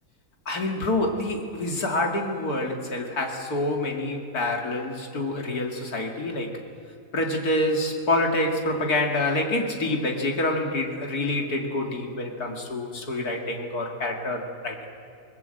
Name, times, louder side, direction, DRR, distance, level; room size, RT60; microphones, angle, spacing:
voice 1, 0.5-6.6 7.1-14.9, left 2 dB, 85° left, 1 dB, 2.9 m, -27 dB
26.5 x 21.0 x 7.9 m, 2.6 s
omnidirectional pair, 1.6 m